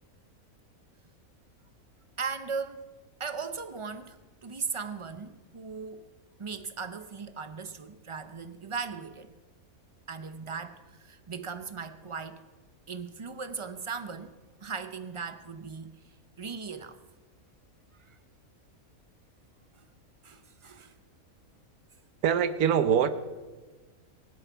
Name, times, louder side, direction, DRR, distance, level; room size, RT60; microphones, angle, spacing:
voice 1, 2.2-2.9 3.2-6.1 6.4-9.3 10.1-12.4 12.9-14.3 14.6-15.9 16.4-17.0 18.1-18.2 20.2-20.9, right 5 dB, 40° right, 0.4 m, -38 dB
voice 2, 22.2-23.1, right 8 dB, 85° right, 1.3 m, -23 dB
23.5 x 8.1 x 4.6 m
omnidirectional pair, 1.5 m